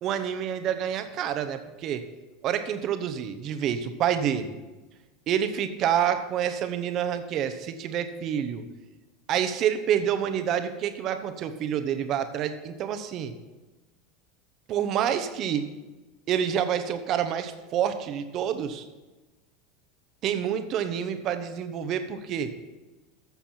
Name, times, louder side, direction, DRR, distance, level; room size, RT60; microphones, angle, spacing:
voice 1, 0.0-2.0 2.4-4.6 5.3-8.6 9.3-13.3 14.7-15.7 16.3-18.8 20.2-22.5, right 9 dB, 40° right, 9 dB, 0.9 m, -28 dB
14.0 x 7.2 x 4.4 m, 1.2 s
figure-of-eight pair, 80°, 0 cm